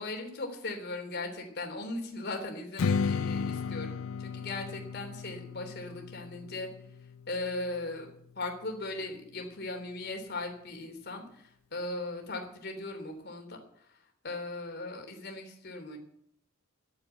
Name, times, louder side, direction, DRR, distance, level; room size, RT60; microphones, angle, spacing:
voice 1, 0.0-6.7 7.3-8.1 8.3-13.6 14.2-16.0, left 2 dB, 50° left, 3 dB, 3.3 m, -38 dB
Strum, 2.8-8.0, left 5 dB, 70° left, 0.4 m, -34 dB
12.0 x 9.1 x 8.2 m, 0.68 s
head